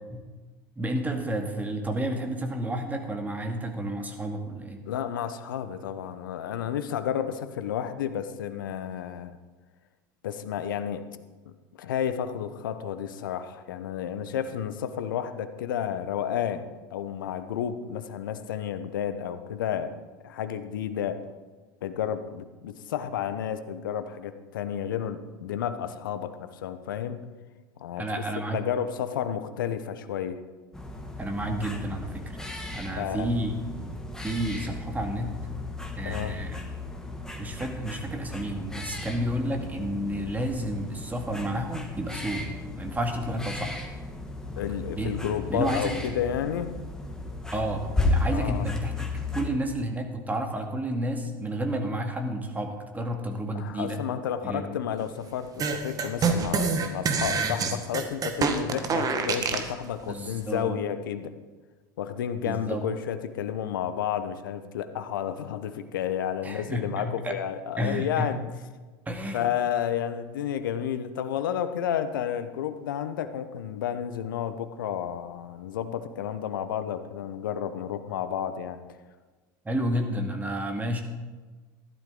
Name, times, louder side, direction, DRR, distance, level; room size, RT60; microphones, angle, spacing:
voice 1, 0.8-4.8 28.0-28.7 31.2-32.4 32.7-33.5 33.8-35.3 36.0-36.6 37.4-42.5 42.8-43.8 44.5-44.6 45.0-45.2 45.5-45.9 47.5-54.0 54.4-54.7 60.1-60.8 62.4-62.8 66.4-67.3 67.8-68.3 69.1-69.5 79.6-81.0, right 1 dB, 15° right, 4 dB, 2.1 m, -31 dB
voice 2, 4.9-9.4 10.2-11.1 11.5-19.9 20.2-21.2 21.8-27.2 27.8-28.2 28.5-30.4 33.0-33.3 36.0-36.4 44.6-46.7 48.3-48.7 53.5-61.3 62.0-68.4 69.3-78.8, left 9 dB, 75° left, 11 dB, 0.9 m, -31 dB
sound 1, 30.7-49.5, left 2 dB, 5° left, 2.0 m, -34 dB
sound 2, 55.6-59.7, right 5 dB, 35° right, 1.6 m, -26 dB
14.5 x 12.0 x 3.9 m, 1.3 s
hypercardioid pair, 80°, 11 cm